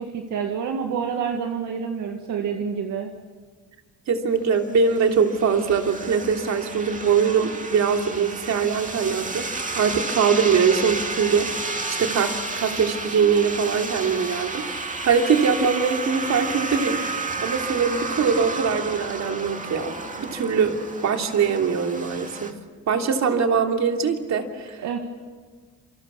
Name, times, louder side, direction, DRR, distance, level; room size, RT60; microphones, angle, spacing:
voice 1, 0.0-3.1 24.8-25.0, right 6 dB, 80° right, 3 dB, 2.1 m, -28 dB
voice 2, 4.1-17.0 17.4-20.8 21.0-22.5 22.9-25.0, right 6 dB, 65° right, 3 dB, 3.1 m, -22 dB
sound 1, 4.6-22.5, right 3 dB, 25° right, 2.4 m, -32 dB
28.0 x 25.0 x 7.2 m, 1.5 s
cardioid pair, 90°, 30 cm